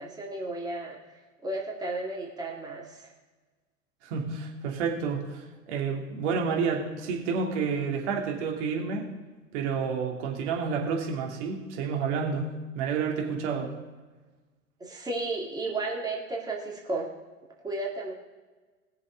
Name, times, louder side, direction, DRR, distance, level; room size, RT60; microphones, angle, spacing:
voice 1, 0.0-3.1 14.8-17.1 17.6-18.1, right 2 dB, 10° right, -1 dB, 2.2 m, -34 dB
voice 2, 4.0-9.1 9.5-12.5 12.7-13.7, right 5 dB, 55° right, 0 dB, 2.7 m, -30 dB
20.0 x 6.8 x 4.0 m, 1.3 s
hypercardioid pair, 95°, 41 cm